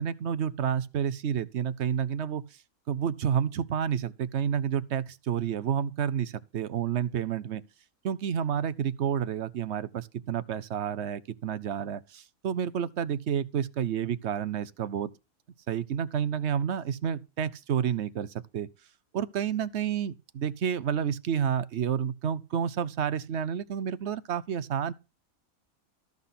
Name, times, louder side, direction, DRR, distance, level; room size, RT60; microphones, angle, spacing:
voice 1, 0.0-2.4 2.9-7.6 8.0-15.1 15.7-18.7 19.1-24.9, right 8 dB, 60° right, 0.9 m, -30 dB
13.5 x 5.9 x 5.8 m
omnidirectional pair, 1.5 m